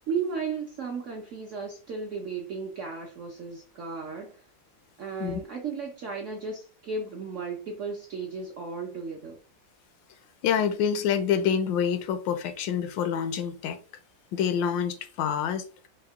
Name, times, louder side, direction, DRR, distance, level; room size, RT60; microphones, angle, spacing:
voice 1, 0.1-4.5 5.0-9.4, right 5 dB, 70° right, 0.7 m, -35 dB
voice 2, 10.4-13.8 14.3-15.6, left 8 dB, 80° left, 1.3 m, -27 dB
4.7 x 2.1 x 3.5 m
omnidirectional pair, 2.0 m